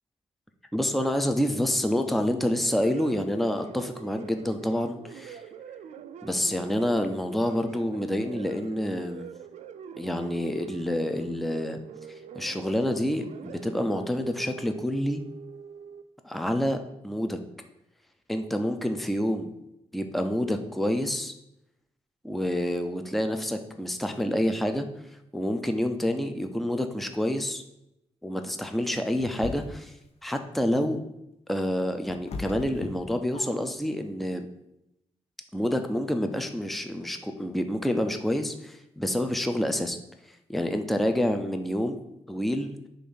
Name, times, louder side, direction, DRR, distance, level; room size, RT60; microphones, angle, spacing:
voice 1, 0.7-5.4 6.2-9.3 10.0-11.8 12.3-15.2 16.2-16.8 17.0-17.4 18.3-19.5 19.9-21.3 22.2-24.9 25.3-27.6 28.2-29.9 30.2-31.0 31.5-34.5 35.5-40.0 40.5-42.7, left 1 dB, ahead, 6 dB, 0.5 m, -28 dB
sound 1, 2.3-16.0, right 8 dB, 75° right, 0.4 m, -44 dB
sound 2, 29.2-30.0 31.5-33.8, left 3 dB, 60° left, 0.7 m, -38 dB
6.9 x 2.6 x 5.5 m, 0.85 s
cardioid pair, 115°, 12 cm